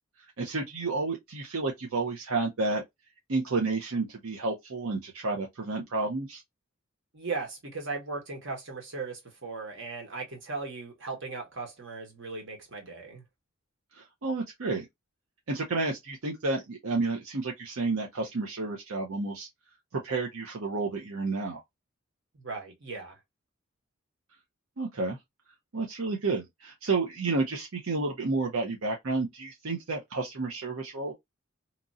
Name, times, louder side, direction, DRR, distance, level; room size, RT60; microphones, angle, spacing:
voice 1, 0.4-2.8 3.3-6.4 13.9-14.8 15.5-19.5 19.9-21.6 24.8-25.2 25.7-31.1, right 3 dB, 85° right, 0.7 m, -31 dB
voice 2, 7.1-13.2 22.3-23.2, right 4 dB, 65° right, 1.3 m, -37 dB
2.9 x 2.5 x 2.5 m
head